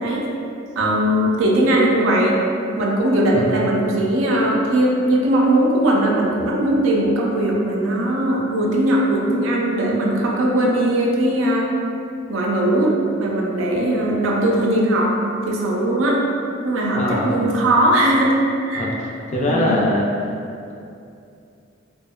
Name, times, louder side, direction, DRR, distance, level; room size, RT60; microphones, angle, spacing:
voice 1, 0.8-2.4 2.8-11.7 12.3-15.1 15.5-16.2 16.6-18.4 18.7-18.9 19.5-19.8, right 1 dB, 80° right, -2 dB, 0.4 m, -19 dB
voice 2, 16.9-17.6 18.7-20.1, left 1 dB, 40° left, -3 dB, 0.4 m, -23 dB
2.7 x 2.1 x 2.2 m, 2.5 s
head